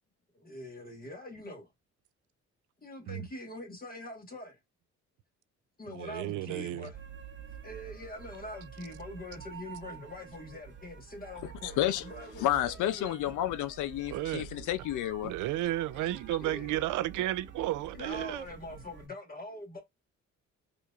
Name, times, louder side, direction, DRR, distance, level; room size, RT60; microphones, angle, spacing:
voice 1, 0.4-1.7 2.8-4.6 5.8-7.0 7.6-13.3 16.4-16.9 17.9-19.8, left 1 dB, 30° left, 1.4 m, -44 dB
voice 2, 5.9-6.9 14.1-14.4 15.2-18.5, right 14 dB, 80° right, 0.4 m, -33 dB
sound 1, 6.9-19.1, right 7 dB, 40° right, 0.9 m, -48 dB
voice 3, 11.6-12.0 12.4-15.3, left 13 dB, 80° left, 0.5 m, -30 dB
4.5 x 2.6 x 2.4 m
cardioid pair, 90°, 30 cm